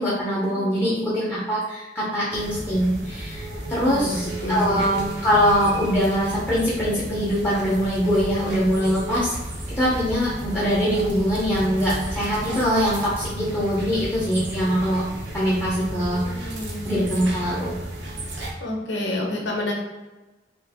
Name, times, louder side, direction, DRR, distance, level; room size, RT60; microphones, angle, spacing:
voice 1, 0.0-9.3 9.8-15.0 15.3-16.4 16.8-17.7, equal, 15° left, -9 dB, 0.9 m, -23 dB
voice 2, 0.5-1.1 3.8-4.8 16.2-16.9 18.6-19.7, left 1 dB, 85° left, -1 dB, 1.0 m, -29 dB
sound 1, 2.3-18.5, right 1 dB, 75° right, 0.9 m, -33 dB
3.2 x 3.1 x 3.5 m, 1.1 s
head